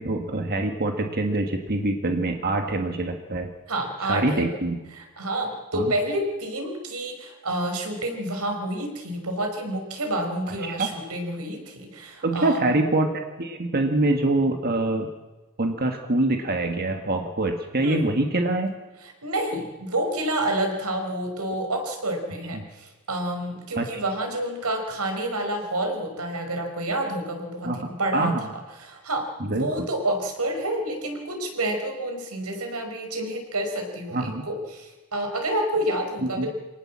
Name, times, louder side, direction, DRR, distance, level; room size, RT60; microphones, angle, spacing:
voice 1, 0.0-3.5 4.0-4.8 5.7-5.9 10.6-10.9 12.2-15.1 15.6-18.7 22.5-22.6 23.8-24.0 27.6-27.8 28.1-28.4 29.4-29.9 34.1-34.5 36.2-36.5, right 2 dB, 45° right, 4 dB, 1.8 m, -25 dB
voice 2, 3.7-4.5 4.9-12.7 17.8-18.1 19.2-28.3 28.8-36.5, right 1 dB, 90° right, 4 dB, 5.3 m, -29 dB
26.0 x 18.5 x 7.5 m, 1.2 s
head